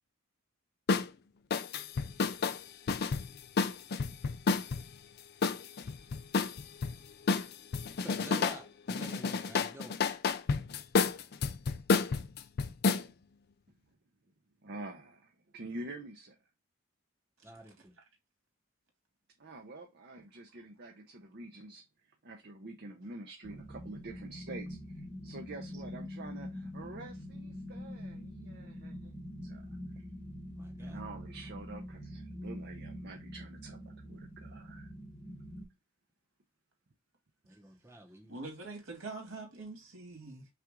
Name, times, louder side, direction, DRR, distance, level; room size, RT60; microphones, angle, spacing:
sound 1, 0.9-1.1 1.5-4.8 5.4-6.9 7.3-8.6 8.9-13.0, left 4 dB, 45° left, 0.4 m, -30 dB
voice 1, 8.0-10.0 17.4-18.0 30.5-31.0 37.4-38.4, right 1 dB, 10° right, 0.9 m, -49 dB
voice 2, 14.6-16.4 19.4-21.8 22.2-29.1 29.4-29.6 30.0-30.1 30.8-34.9, right 2 dB, 50° right, 0.7 m, -47 dB
sound 2, 23.4-35.6, equal, 10° left, 1.2 m, -44 dB
voice 3, 38.3-40.5, right 3 dB, 75° right, 2.2 m, -44 dB
5.7 x 2.5 x 3.6 m
head